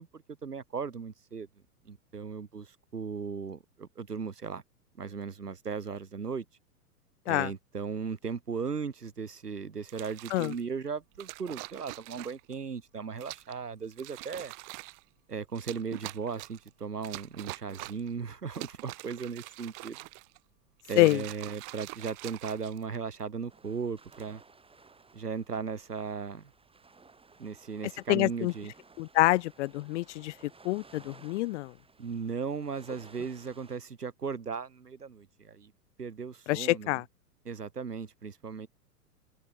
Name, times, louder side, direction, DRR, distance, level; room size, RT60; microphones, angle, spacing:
voice 1, 0.0-1.5 1.9-4.6 5.0-6.4 7.3-14.5 15.3-20.0 20.9-24.4 25.1-26.5 27.4-28.7 32.0-35.7 36.0-37.0 37.4-38.7, right 5 dB, 80° right, 7.6 m, -37 dB
sound 1, 9.9-10.6 11.2-12.5 13.2-13.6 13.9-15.0 15.5-16.7 17.0-18.1 18.5-20.4 20.8-23.2 23.9-24.3, right 35 dB, 45° right, 5.1 m, -44 dB
sound 2, 23.5-33.8, right 4 dB, 10° right, 7.7 m, -58 dB
voice 2, 28.1-28.5 29.0-30.3 30.6-31.7 36.5-37.0, left 18 dB, 50° left, 0.9 m, -26 dB
open air
figure-of-eight pair, 100°, 46 cm